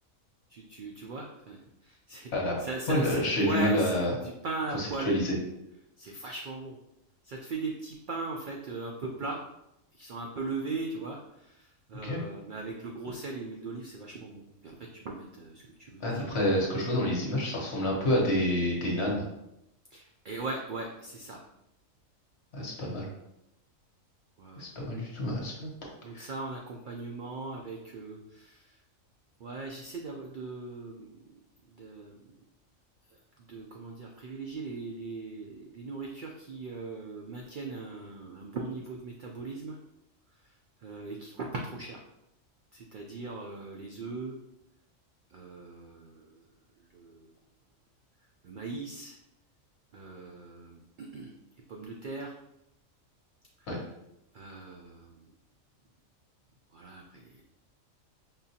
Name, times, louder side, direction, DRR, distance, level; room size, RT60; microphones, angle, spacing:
voice 1, 0.5-5.2 5.7-6.8 7.2-9.4 9.9-16.4 19.9-21.4 24.4-24.7 26.0-28.8 29.4-31.2 31.6-32.2 33.1-33.2 33.5-39.8 40.3-42.0 42.7-44.4 45.3-46.5 46.8-47.3 48.4-49.2 49.9-51.3 51.7-52.4 53.6-53.9 54.3-55.3 56.7-57.4, right 3 dB, 85° right, 0 dB, 0.4 m, -39 dB
voice 2, 2.9-4.1 4.8-5.3 12.0-12.2 16.0-19.3 22.5-23.1 24.5-25.7 26.1-26.3 53.7-53.8, equal, 55° left, -2 dB, 1.2 m, -28 dB
5.5 x 2.4 x 2.7 m, 0.85 s
omnidirectional pair, 1.4 m